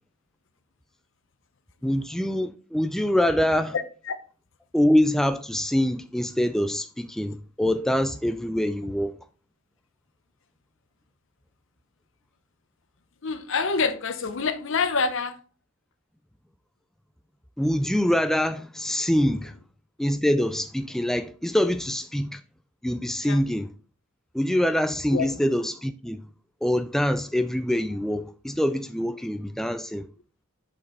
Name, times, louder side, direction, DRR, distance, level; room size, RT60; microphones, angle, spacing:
voice 1, 1.8-3.7 4.7-9.1 17.6-19.5 20.0-22.4 22.8-23.7 24.3-26.2 26.6-30.1, left 1 dB, ahead, 0.3 m, -24 dB
voice 2, 3.7-4.1 13.2-15.4 23.2-23.4 25.1-25.3, left 4 dB, 65° left, 0.8 m, -27 dB
6.8 x 5.3 x 3.9 m
head